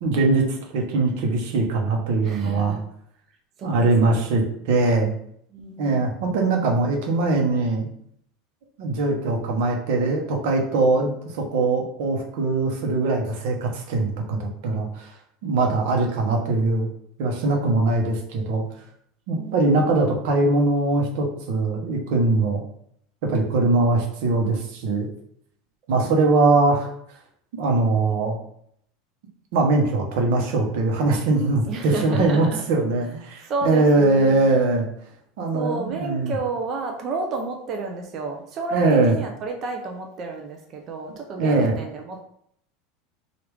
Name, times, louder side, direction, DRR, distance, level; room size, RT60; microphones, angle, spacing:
voice 1, 0.0-2.8 3.6-5.1 5.8-7.9 8.8-15.1 15.4-16.9 17.2-18.6 19.3-22.6 23.3-25.1 25.9-26.9 27.6-28.4 29.5-34.8 35.4-36.3 38.7-39.1 41.4-41.7, right 3 dB, 65° right, 1 dB, 0.8 m, -21 dB
voice 2, 2.2-2.8 3.6-4.2 5.5-6.1 19.3-20.0 25.9-26.4 31.6-32.6 33.1-33.2 33.4-34.6 35.5-42.2, right 4 dB, 35° right, 2 dB, 0.4 m, -31 dB
3.3 x 2.4 x 3.1 m, 0.68 s
supercardioid pair, 155°, 0 cm